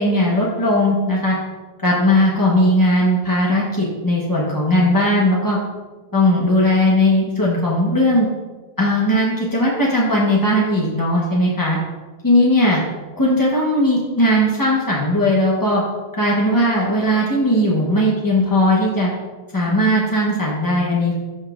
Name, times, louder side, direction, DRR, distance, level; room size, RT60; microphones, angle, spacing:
voice 1, 0.0-1.3 1.8-5.6 6.1-8.3 8.8-11.8 12.2-12.8 13.2-15.8 16.1-19.1 19.5-21.2, left 1 dB, 25° left, -4 dB, 0.4 m, -18 dB
12.0 x 5.3 x 2.4 m, 1.3 s
omnidirectional pair, 2.1 m